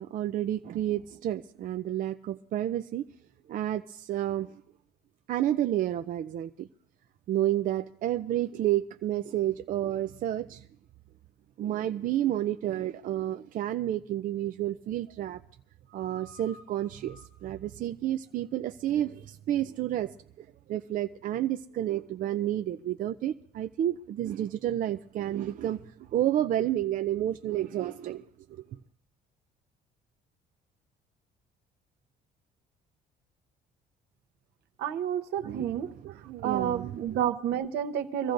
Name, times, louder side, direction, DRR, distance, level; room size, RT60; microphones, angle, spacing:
voice 1, 0.0-3.1 3.5-4.5 5.3-6.7 7.3-10.6 11.6-15.4 15.9-25.8 26.1-28.2 35.4-37.3, right 12 dB, 55° right, 0.4 m, -30 dB
voice 2, 34.8-35.9 36.4-38.3, right 9 dB, 75° right, 0.9 m, -30 dB
24.5 x 14.5 x 2.6 m
cardioid pair, 110°, 17 cm